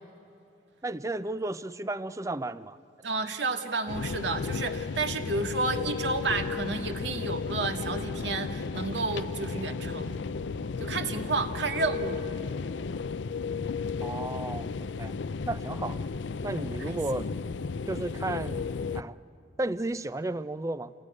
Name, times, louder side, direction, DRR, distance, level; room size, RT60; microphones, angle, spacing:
voice 1, 0.8-2.8 14.0-15.2 15.5-16.0 16.4-17.3 17.9-19.2 19.6-20.9, right 2 dB, 15° right, 15 dB, 0.5 m, -33 dB
voice 2, 3.0-10.2 10.8-12.2 16.8-17.0, right 3 dB, 75° right, 6 dB, 1.8 m, -31 dB
sound 1, 3.9-19.0, left 4 dB, 80° left, 0.5 m, -34 dB
27.0 x 19.5 x 9.6 m, 2.9 s
head